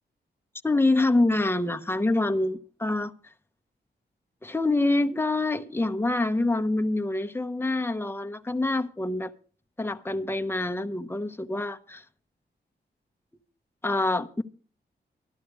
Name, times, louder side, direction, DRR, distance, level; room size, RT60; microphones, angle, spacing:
voice 1, 0.6-3.1 4.4-9.3 9.8-12.0 13.8-14.4, left 2 dB, 10° left, 0.9 m, -26 dB
13.5 x 12.0 x 4.7 m
wide cardioid pair, 110°, 18 cm